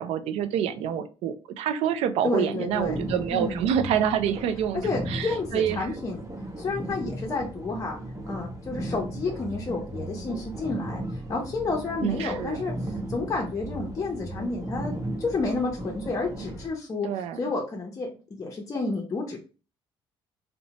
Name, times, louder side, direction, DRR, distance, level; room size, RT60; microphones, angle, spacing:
voice 1, 0.0-4.8 5.1-5.9 12.0-12.6 17.0-17.4, right 9 dB, 70° right, 10 dB, 0.4 m, -27 dB
voice 2, 2.2-3.0 3.3-3.6 4.7-6.2 6.6-8.0 8.3-11.0 11.3-17.1 17.4-19.4, left 3 dB, 30° left, -1 dB, 0.6 m, -30 dB
sound 1, 2.7-16.7, right 1 dB, 30° right, 0.8 m, -36 dB
2.6 x 2.1 x 2.8 m, 0.35 s
supercardioid pair, 80°, 11 cm